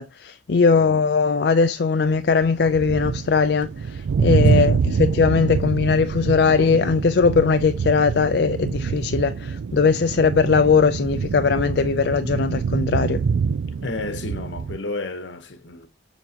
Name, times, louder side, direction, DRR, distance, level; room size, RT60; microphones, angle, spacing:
voice 1, 0.0-13.2, left 5 dB, 60° left, 0.4 m, -20 dB
sound 1, 2.1-14.8, right 5 dB, 90° right, 0.4 m, -25 dB
voice 2, 13.8-15.9, left 2 dB, 80° left, 1.1 m, -32 dB
6.9 x 6.1 x 2.8 m
head